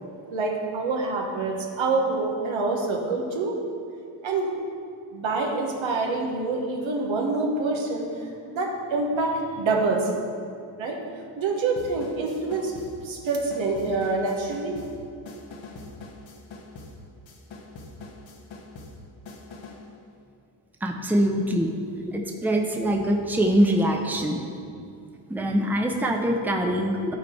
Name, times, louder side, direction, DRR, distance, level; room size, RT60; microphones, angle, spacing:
voice 1, 0.3-3.6 4.2-4.5 5.1-8.1 8.5-10.1 10.8-11.0 11.4-12.7 13.0-14.7, right 3 dB, 70° right, 0 dB, 1.4 m, -26 dB
sound 1, 11.8-19.9, left 2 dB, 65° left, 1.3 m, -44 dB
voice 2, 20.8-21.7 22.1-24.4 25.3-27.1, equal, 5° right, 1 dB, 0.8 m, -23 dB
12.0 x 4.0 x 4.5 m, 2.4 s
cardioid pair, 65°, 49 cm